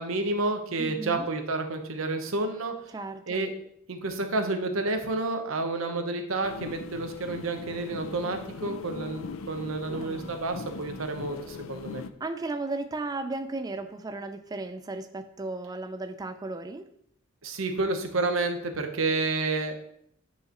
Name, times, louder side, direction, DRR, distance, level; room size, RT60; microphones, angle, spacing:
voice 1, 0.0-2.7 3.3-3.5 3.9-12.0 17.4-19.7, right 2 dB, 85° right, 6 dB, 0.9 m, -30 dB
voice 2, 0.8-1.3 2.9-3.5 9.9-10.3 12.2-16.9, right 2 dB, 20° right, 8 dB, 0.3 m, -35 dB
sound 1, 6.4-12.1, left 4 dB, 70° left, 0.4 m, -40 dB
9.3 x 4.8 x 3.0 m, 0.69 s
head